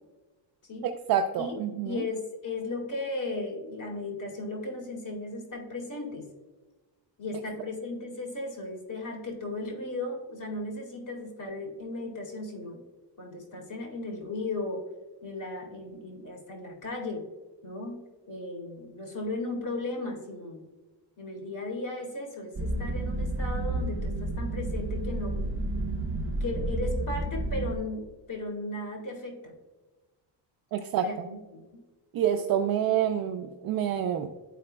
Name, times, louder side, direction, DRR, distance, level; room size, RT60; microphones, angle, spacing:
voice 1, 0.8-2.0 30.7-31.1 32.1-34.3, right 9 dB, 55° right, 5 dB, 0.5 m, -27 dB
voice 2, 1.8-6.2 7.2-12.8 13.2-14.9 15.2-17.2 17.6-18.0 18.3-20.6 21.2-25.3 26.4-29.5 30.9-31.8 32.1-32.2, left 2 dB, 45° left, -1 dB, 2.3 m, -36 dB
sound 1, 22.5-27.8, right 1 dB, 30° right, 0.9 m, -31 dB
11.5 x 4.9 x 2.2 m, 1.2 s
cardioid pair, 135°, 43 cm